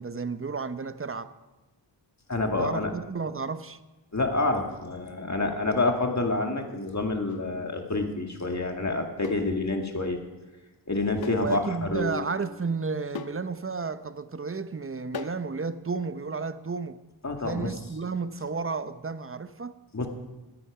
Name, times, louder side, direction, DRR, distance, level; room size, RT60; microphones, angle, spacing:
voice 1, 0.0-1.3 2.6-3.8 11.4-17.0 17.4-19.8, right 4 dB, 30° right, 0.7 m, -32 dB
voice 2, 2.3-2.9 4.1-10.2 10.9-12.2 17.2-17.7 19.9-20.1, left 2 dB, 35° left, 1.9 m, -28 dB
sound 1, 7.3-7.5 9.2-9.5 11.2-11.5 11.8-11.9 13.1-13.4 15.1-15.5, left 7 dB, 55° left, 0.7 m, -39 dB
14.0 x 9.8 x 4.9 m
cardioid pair, 50°, 45 cm